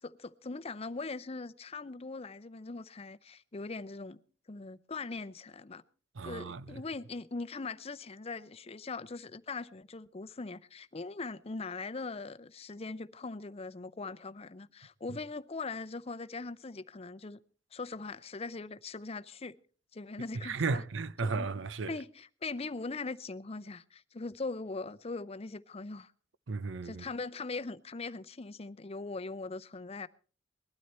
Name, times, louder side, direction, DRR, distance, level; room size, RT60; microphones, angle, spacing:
voice 1, 0.0-4.2 4.5-5.8 6.2-17.4 17.7-19.6 19.9-20.8 21.2-21.5 21.9-26.1 26.8-30.1, left 3 dB, 35° left, 0.6 m, -41 dB
voice 2, 6.1-6.8 15.1-15.2 20.4-22.0 26.5-27.0, right 4 dB, 80° right, 0.6 m, -34 dB
20.5 x 12.5 x 4.3 m
head